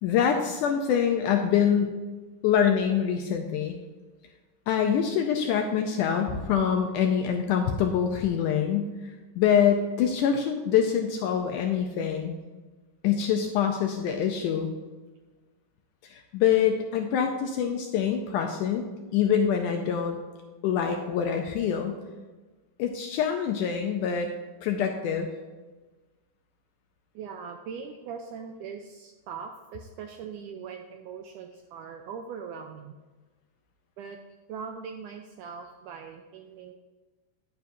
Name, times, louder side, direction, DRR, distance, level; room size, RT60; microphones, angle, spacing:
voice 1, 0.0-2.0 2.4-3.8 4.7-8.9 9.4-12.3 13.0-14.7 16.0-18.8 19.1-20.2 20.6-22.0 22.8-24.3 24.6-25.3, left 8 dB, 80° left, 4 dB, 1.9 m, -25 dB
voice 2, 27.2-32.9 34.0-34.2 34.5-36.7, right 6 dB, 85° right, 4 dB, 1.8 m, -41 dB
10.5 x 9.3 x 2.7 m, 1.3 s
omnidirectional pair, 4.2 m